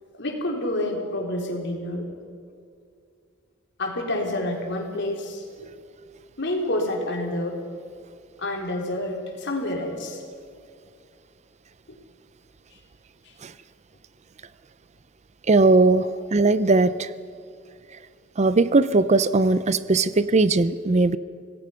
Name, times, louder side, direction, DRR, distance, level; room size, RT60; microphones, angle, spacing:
voice 1, 0.1-2.1 3.8-5.7 6.4-7.6 8.4-10.2 11.9-12.0 12.7-12.8 13.2-13.3, left 1 dB, 60° left, 1 dB, 3.7 m, -28 dB
voice 2, 15.5-17.1 18.4-21.2, right 3 dB, 35° right, 15 dB, 0.5 m, -19 dB
26.5 x 18.5 x 5.7 m, 2.3 s
head